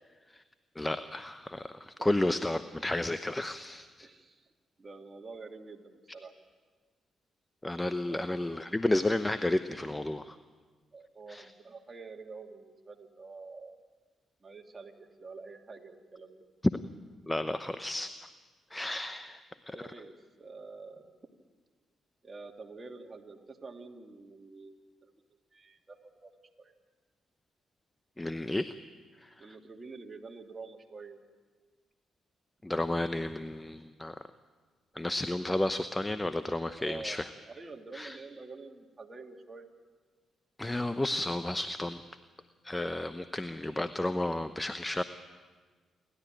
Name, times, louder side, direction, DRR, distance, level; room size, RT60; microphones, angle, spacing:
voice 1, 0.8-4.1 7.6-10.4 11.3-11.4 17.3-18.1 18.7-19.4 19.7-19.8 28.2-28.7 29.2-29.4 32.6-34.2 34.9-37.3 37.9-38.2 40.6-42.0 42.6-45.0, left 1 dB, 15° left, 11 dB, 0.9 m, -32 dB
voice 2, 4.0-4.5 4.8-6.3 8.0-8.2 10.9-13.8 14.4-16.5 19.7-21.0 22.2-25.1 25.5-26.3 26.6-26.7 29.4-31.2 36.8-39.7, right 4 dB, 35° right, 3 dB, 2.6 m, -47 dB
28.5 x 12.5 x 9.1 m, 1.4 s
hypercardioid pair, 50°, 0 cm